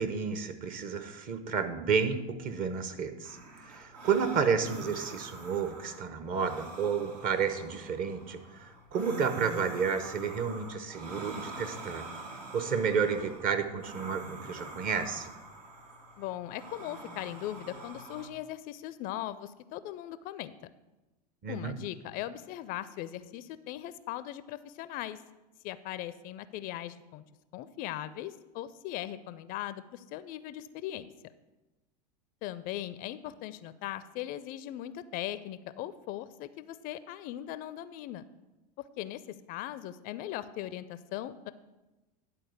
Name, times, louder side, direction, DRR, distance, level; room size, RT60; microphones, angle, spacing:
voice 1, 0.0-15.3 21.4-21.8, right 6 dB, 40° right, 9 dB, 1.0 m, -31 dB
sound 1, 3.2-18.3, right 2 dB, 70° right, 1.5 m, -45 dB
voice 2, 16.2-20.5 21.5-25.2 25.6-27.2 27.5-31.1 32.4-38.2 39.0-41.5, left 13 dB, 45° left, 15 dB, 0.4 m, -39 dB
10.5 x 4.3 x 6.5 m, 1.1 s
hypercardioid pair, 90°, 21 cm